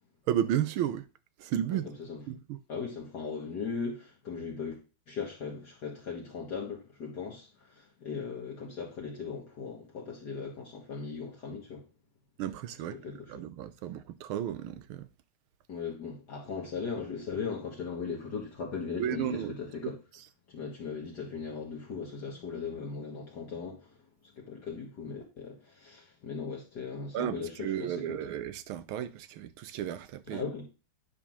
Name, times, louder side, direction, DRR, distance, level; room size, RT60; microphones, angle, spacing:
voice 1, 0.3-1.0 1.4-1.9 2.3-2.6 12.4-13.0 13.3-15.1 19.0-19.5 19.8-20.0 27.1-30.5, right 10 dB, 80° right, 1.5 m, -33 dB
voice 2, 2.7-4.8 5.1-11.8 12.9-13.4 15.7-20.0 20.5-24.0 24.4-28.2 30.3-30.7, left 5 dB, 55° left, 1.9 m, -38 dB
10.0 x 3.6 x 6.1 m
omnidirectional pair, 2.4 m